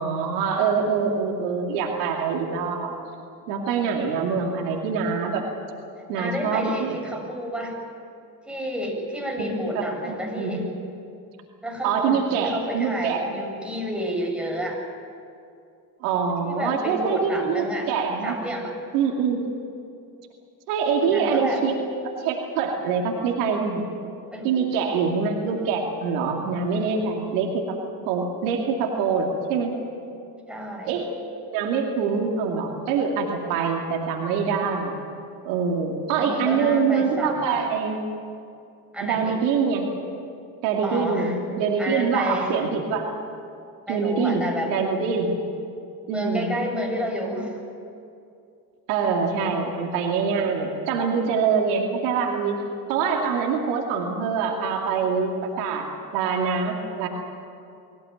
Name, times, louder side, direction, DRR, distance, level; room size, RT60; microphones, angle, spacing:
voice 1, 0.0-2.9 3.5-5.4 6.1-7.0 9.4-10.6 11.8-13.2 16.0-18.4 18.9-19.4 20.7-21.8 22.0-23.8 24.4-27.8 28.1-29.7 30.9-31.1 31.5-34.9 35.4-38.0 39.0-39.9 40.6-43.1 43.9-45.3 46.1-46.5 48.9-52.6 52.9-57.1, right 5 dB, 80° right, 1 dB, 2.6 m, -24 dB
voice 2, 6.1-7.8 8.5-10.7 11.6-14.8 16.4-17.9 18.2-18.7 21.0-21.6 24.3-24.7 30.5-31.0 36.2-37.5 38.9-39.4 40.8-41.4 41.8-42.6 43.9-44.7 46.1-47.6, equal, ahead, 0 dB, 7.6 m, -30 dB
24.0 x 16.0 x 9.2 m, 2.5 s
hypercardioid pair, 65°, 45 cm